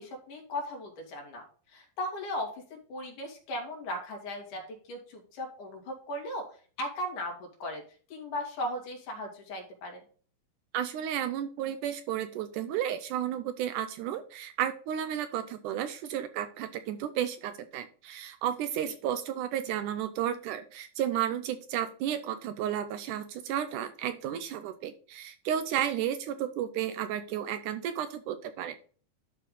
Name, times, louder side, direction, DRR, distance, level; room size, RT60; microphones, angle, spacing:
voice 1, 0.0-1.4 1.7-4.6 4.9-6.4 6.8-7.8 8.1-10.0, left 1 dB, 65° left, 1 dB, 3.7 m, -37 dB
voice 2, 10.7-28.9, right 10 dB, 80° right, 10 dB, 1.9 m, -33 dB
12.0 x 4.5 x 3.9 m, 0.42 s
omnidirectional pair, 4.0 m